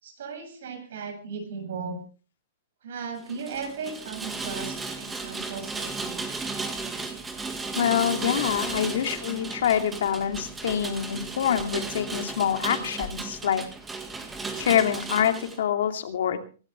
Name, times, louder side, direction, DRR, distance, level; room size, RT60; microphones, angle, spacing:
voice 1, 0.0-2.0 2.8-6.3, right 5 dB, 60° right, 5 dB, 7.5 m, -36 dB
Rain, 3.2-15.6, right 3 dB, 10° right, 1.8 m, -35 dB
voice 2, 7.8-13.6 14.6-16.4, left 9 dB, 65° left, 6 dB, 2.6 m, -25 dB
25.0 x 13.0 x 3.4 m, 0.37 s
hypercardioid pair, 170°, 0 cm